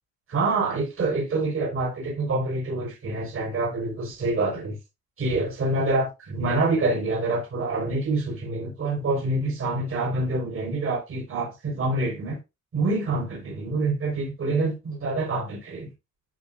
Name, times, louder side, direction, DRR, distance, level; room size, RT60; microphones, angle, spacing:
voice 1, 0.3-4.8 5.2-12.4 12.7-15.9, right 2 dB, 45° right, 4.8 m, -26 dB
11.5 x 5.2 x 2.6 m
cardioid pair, 90°, 30 cm